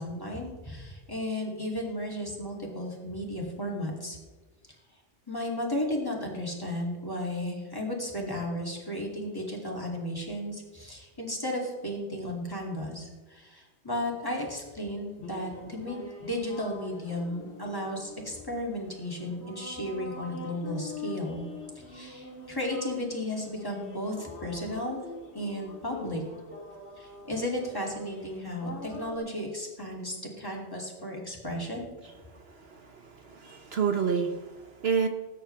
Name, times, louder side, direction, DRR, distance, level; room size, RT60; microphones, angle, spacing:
voice 1, 0.0-4.2 5.3-21.4 21.7-25.0 25.3-26.2 27.0-31.9, left 1 dB, 20° left, -2 dB, 2.7 m, -34 dB
sound 1, 15.2-29.2, left 2 dB, 70° left, 2.3 m, -44 dB
voice 2, 32.6-35.1, right 6 dB, 60° right, 5 dB, 1.1 m, -29 dB
20.0 x 9.6 x 3.4 m, 1.3 s
omnidirectional pair, 1.2 m